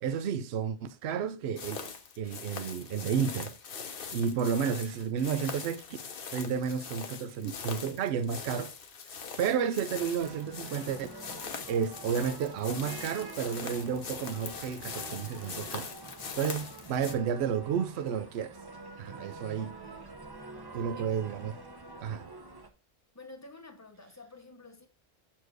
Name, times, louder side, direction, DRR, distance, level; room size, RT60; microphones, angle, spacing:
voice 1, 0.0-1.9 2.2-3.5 4.1-5.8 6.3-8.7 9.4-11.1 11.7-15.9 16.4-18.6 19.0-19.7 20.7-21.5 22.0-22.3, right 7 dB, 70° right, 0.8 m, -31 dB
sound 1, 1.6-17.1, left 6 dB, 55° left, 0.9 m, -42 dB
sound 2, 10.2-22.7, right 3 dB, 25° right, 0.7 m, -47 dB
voice 2, 19.6-20.2 20.8-21.1 23.1-24.9, left 3 dB, 15° left, 0.8 m, -51 dB
6.5 x 4.4 x 4.6 m
omnidirectional pair, 1.2 m